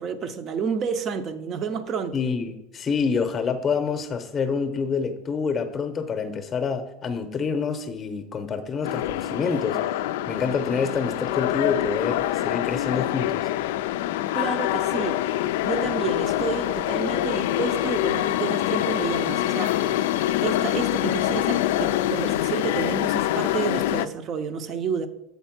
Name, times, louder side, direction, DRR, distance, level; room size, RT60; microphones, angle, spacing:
voice 1, 0.0-2.2 14.3-15.3 15.6-20.1 20.4-25.1, right 6 dB, 30° right, 0.6 m, -30 dB
voice 2, 2.1-13.5, left 5 dB, 20° left, 0.7 m, -27 dB
sound 1, 8.8-24.1, left 14 dB, 85° left, 0.3 m, -25 dB
7.1 x 4.2 x 5.9 m
supercardioid pair, 155°, 0 cm